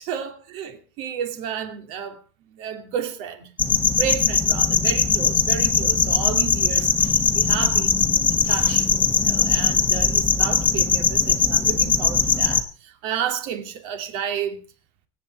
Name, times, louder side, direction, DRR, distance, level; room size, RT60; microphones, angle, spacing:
voice 1, 0.0-2.2 2.5-3.5 4.0-7.9 8.3-8.9 9.2-14.6, right 8 dB, 60° right, 2.6 m, -31 dB
sound 1, 3.6-12.6, left 5 dB, 15° left, 1.2 m, -20 dB
25.0 x 8.6 x 4.7 m
cardioid pair, 160°, 11 cm